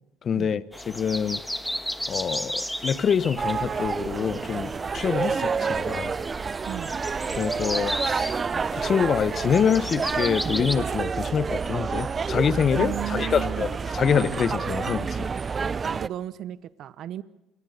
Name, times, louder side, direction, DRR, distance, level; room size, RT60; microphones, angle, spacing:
voice 1, 0.2-1.4 2.1-6.1 7.4-8.3 8.7-15.3, left 7 dB, 45° left, 1.2 m, -26 dB
sound 1, 0.7-10.7, equal, 5° left, 1.5 m, -35 dB
sound 2, 3.4-16.1, right 5 dB, 30° right, 0.7 m, -29 dB
voice 2, 6.7-7.0 12.7-13.7 15.8-17.2, right 11 dB, 60° right, 0.8 m, -35 dB
28.0 x 20.5 x 6.7 m
supercardioid pair, 85°, 0 cm